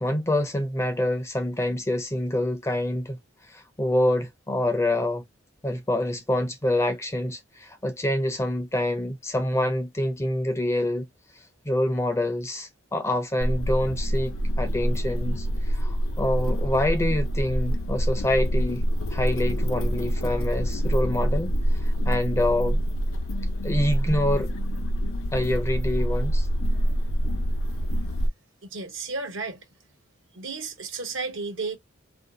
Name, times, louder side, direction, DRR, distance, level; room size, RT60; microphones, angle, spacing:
voice 1, 0.0-3.2 3.5-5.2 5.6-11.0 11.6-18.8 19.1-21.5 22.0-22.8 23.6-24.5 25.3-26.5, left 1 dB, 15° left, 0.4 m, -26 dB
sound 1, 13.4-28.3, equal, 85° left, 0.6 m, -26 dB
voice 2, 28.6-29.6 30.3-31.8, right 4 dB, 65° right, 0.8 m, -33 dB
2.6 x 2.3 x 3.7 m
head